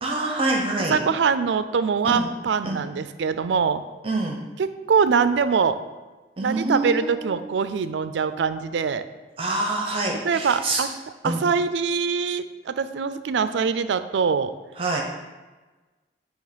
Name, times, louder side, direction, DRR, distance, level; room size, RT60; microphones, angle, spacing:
voice 1, 0.0-1.0 2.0-2.3 2.6-2.8 4.0-4.4 6.4-7.3 9.4-10.8 11.2-11.4 14.8-15.0, right 2 dB, 30° right, 0 dB, 0.6 m, -26 dB
voice 2, 0.9-3.8 4.6-5.8 6.4-9.0 10.2-10.9 11.2-14.5, right 6 dB, 90° right, 12 dB, 0.4 m, -23 dB
7.9 x 2.9 x 5.1 m, 1.2 s
head